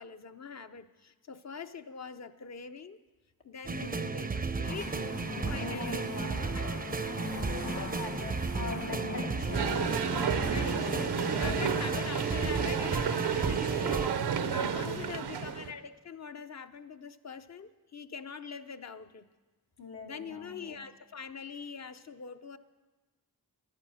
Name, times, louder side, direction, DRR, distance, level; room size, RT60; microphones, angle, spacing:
voice 1, 0.0-3.0 3.4-5.0 5.5-6.7 10.5-11.1 11.4-19.3 20.0-22.6, left 6 dB, 45° left, 10 dB, 0.7 m, -43 dB
sound 1, 3.6-14.1, right 4 dB, 25° right, 0.5 m, -34 dB
voice 2, 3.8-4.3 7.9-9.7 11.8-12.2 14.5-15.2 19.8-20.8, left 4 dB, 85° left, -1 dB, 2.1 m, -43 dB
sound 2, 4.6-11.9, left 2 dB, 60° left, 1.9 m, -40 dB
sound 3, 9.5-15.7, right 7 dB, 90° right, 0.8 m, -31 dB
11.5 x 8.9 x 7.6 m, 1.3 s
cardioid pair, 65°, 38 cm